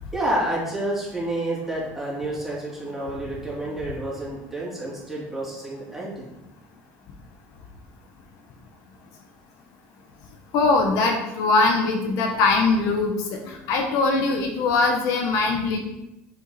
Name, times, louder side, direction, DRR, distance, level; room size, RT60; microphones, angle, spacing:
voice 1, 0.1-6.3, right 1 dB, 5° right, -7 dB, 2.9 m, -29 dB
voice 2, 10.5-15.8, left 3 dB, 70° left, 2 dB, 1.4 m, -21 dB
7.9 x 5.5 x 4.3 m, 0.92 s
cardioid pair, 140°, 6 cm